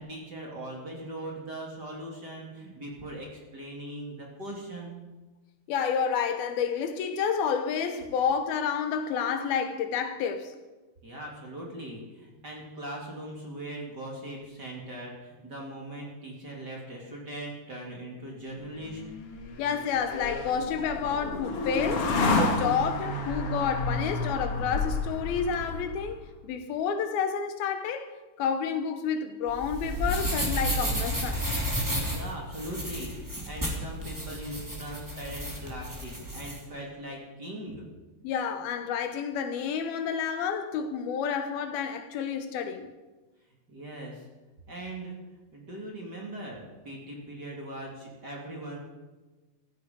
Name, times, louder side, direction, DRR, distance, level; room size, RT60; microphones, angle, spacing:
voice 1, 0.0-5.0 11.0-19.0 32.1-37.9 43.7-44.3 44.7-45.2 45.5-48.8, right 1 dB, 30° right, 2.7 m, -40 dB
voice 2, 5.7-10.5 19.6-28.1 28.4-31.4 38.2-42.9, left 7 dB, 75° left, 2.7 m, -30 dB
sound 1, 18.8-26.2, left 2 dB, 50° left, 2.0 m, -30 dB
sound 2, 29.5-36.6, equal, 5° right, 2.0 m, -32 dB
15.0 x 15.0 x 5.3 m
omnidirectional pair, 4.5 m